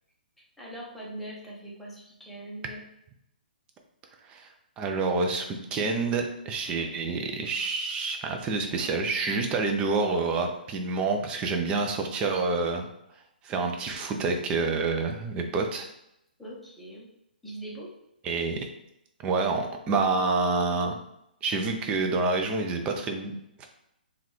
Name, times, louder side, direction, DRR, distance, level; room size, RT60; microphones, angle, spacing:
voice 1, 0.6-2.8 16.4-17.1 17.4-17.9, right 1 dB, ahead, -5 dB, 0.8 m, -41 dB
voice 2, 4.8-12.9 13.4-15.9 18.2-18.7 19.2-21.0 21.4-23.7, right 3 dB, 20° right, 3 dB, 0.4 m, -28 dB
3.7 x 2.3 x 3.1 m, 0.79 s
figure-of-eight pair, 130°, 5 cm